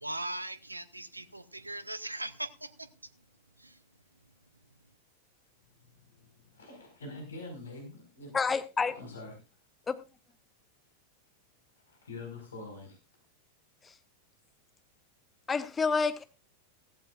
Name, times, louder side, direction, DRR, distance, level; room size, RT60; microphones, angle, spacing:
voice 1, 0.0-2.7, right 1 dB, 85° right, 0.7 m, -39 dB
voice 2, 5.8-8.3 8.9-9.3 11.9-13.0, left 2 dB, 70° left, 5.0 m, -45 dB
voice 3, 8.3-8.9 9.9-10.0 13.8-13.9 15.5-16.2, left 5 dB, 15° left, 1.0 m, -28 dB
15.5 x 15.0 x 2.5 m
figure-of-eight pair, 90°, 0 cm